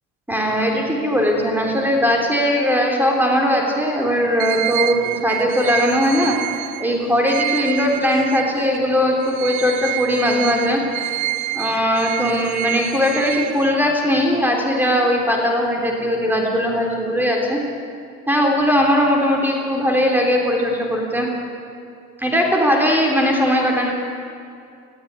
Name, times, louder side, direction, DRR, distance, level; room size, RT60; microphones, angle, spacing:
voice 1, 0.3-10.8 11.5-17.6 18.3-21.3 22.2-23.9, equal, 5° right, 0 dB, 3.6 m, -19 dB
sound 1, 4.4-8.8 9.2-14.1, right 16 dB, 75° right, 0.8 m, -28 dB
20.5 x 14.5 x 9.8 m, 2.4 s
cardioid pair, 115°, 30 cm